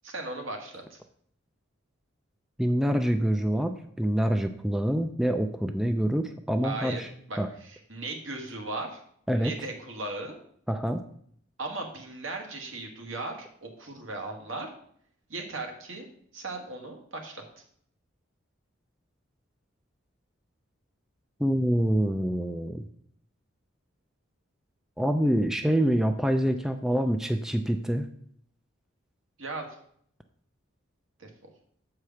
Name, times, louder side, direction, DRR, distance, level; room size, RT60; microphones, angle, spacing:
voice 1, 0.0-1.0 6.6-7.0 7.3-9.0 9.3-10.4 11.6-14.7 15.3-16.1 16.3-17.4 29.4-29.7 31.2-31.3, right 2 dB, 80° right, 2 dB, 1.6 m, -37 dB
voice 2, 2.6-7.1 7.4-7.5 9.3-9.5 10.7-11.0 21.4-22.8 25.0-28.1, equal, ahead, 7 dB, 0.3 m, -26 dB
7.3 x 4.9 x 5.7 m, 0.64 s
head